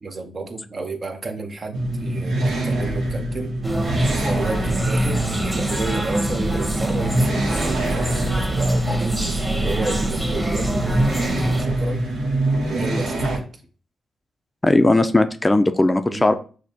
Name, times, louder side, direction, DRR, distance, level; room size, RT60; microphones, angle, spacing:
voice 1, 0.0-3.5 4.2-9.1 9.6-12.0 12.7-13.5 16.1-16.3, right 3 dB, 50° right, 5 dB, 0.7 m, -31 dB
sound 1, 1.7-13.4, right 1 dB, 85° right, 0.9 m, -24 dB
sound 2, 3.6-11.6, right 1 dB, 20° right, 1.1 m, -25 dB
voice 2, 14.6-16.3, left 2 dB, 20° left, 9 dB, 0.4 m, -17 dB
6.2 x 2.1 x 2.7 m, 0.38 s
supercardioid pair, 45°, 0 cm